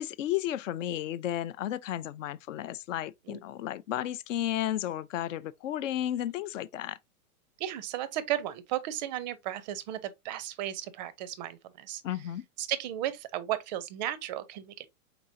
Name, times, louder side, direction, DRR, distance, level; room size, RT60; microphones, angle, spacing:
voice 1, 0.0-7.0 12.0-12.4, left 12 dB, 60° left, 0.5 m, -33 dB
voice 2, 7.6-12.0 12.6-14.9, right 12 dB, 30° right, 0.4 m, -34 dB
4.5 x 3.9 x 2.6 m
hypercardioid pair, 130°, 44 cm